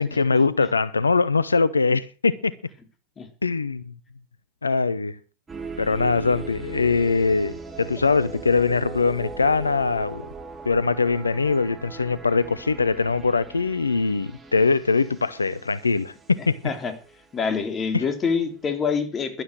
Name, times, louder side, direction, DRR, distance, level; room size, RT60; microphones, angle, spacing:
voice 1, 0.0-2.5 3.4-3.9 4.6-5.2 5.8-10.2 10.7-16.6 17.9-18.0, left 4 dB, 90° left, 0.6 m, -22 dB
sound 1, 5.5-18.4, right 4 dB, 20° right, 4.2 m, -40 dB
voice 2, 17.3-19.4, left 5 dB, 30° left, 3.3 m, -26 dB
12.0 x 12.0 x 6.2 m
figure-of-eight pair, 85°, 0 cm